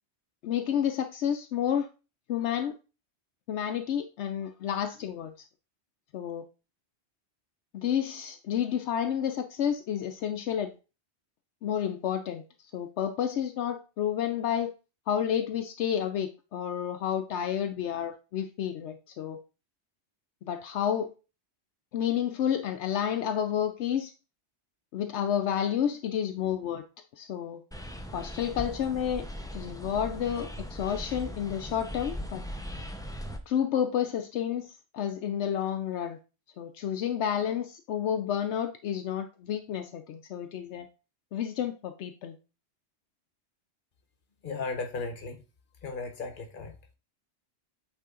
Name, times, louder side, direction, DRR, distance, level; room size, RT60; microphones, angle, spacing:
voice 1, 0.4-1.9 2.3-2.7 3.5-5.3 6.1-6.4 7.7-10.7 11.6-12.4 12.7-14.7 15.1-19.4 20.4-21.1 21.9-24.1 24.9-26.8 27.1-27.6 28.1-29.2 29.5-32.4 33.5-36.2 36.6-40.9 41.3-42.3, left 9 dB, 80° left, 0.9 m, -30 dB
sound 1, 27.7-33.4, equal, 5° left, 0.5 m, -39 dB
voice 2, 44.4-45.4 45.8-46.8, left 3 dB, 50° left, 1.2 m, -35 dB
8.3 x 3.4 x 3.7 m
omnidirectional pair, 1.2 m